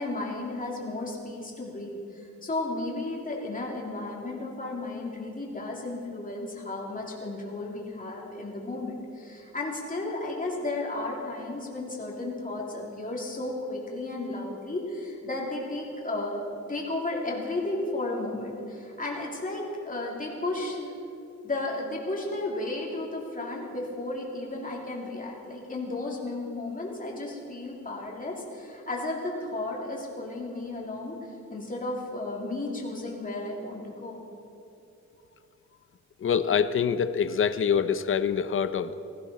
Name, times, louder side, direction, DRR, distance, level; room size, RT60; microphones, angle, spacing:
voice 1, 0.0-16.4 16.7-20.9 21.4-31.2 31.5-34.2, left 2 dB, 25° left, -2 dB, 2.6 m, -33 dB
voice 2, 36.2-38.9, left 7 dB, 45° left, 13 dB, 0.6 m, -25 dB
16.0 x 16.0 x 4.1 m, 2.7 s
wide cardioid pair, 125°, 30 cm